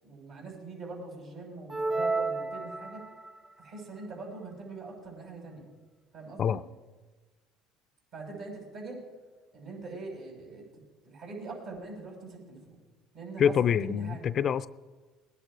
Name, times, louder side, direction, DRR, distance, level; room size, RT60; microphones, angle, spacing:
voice 1, 0.0-3.0 3.6-5.7 6.1-6.6 8.1-9.0 9.5-10.6 11.0-12.8 13.1-13.5 13.8-14.2, right 3 dB, 60° right, -1 dB, 6.1 m, -42 dB
sound 1, 1.7-3.4, right 3 dB, 25° right, 1.2 m, -31 dB
voice 2, 13.4-14.7, left 8 dB, 45° left, 16 dB, 0.4 m, -26 dB
20.0 x 10.0 x 4.9 m, 1.3 s
supercardioid pair, 85°, 0 cm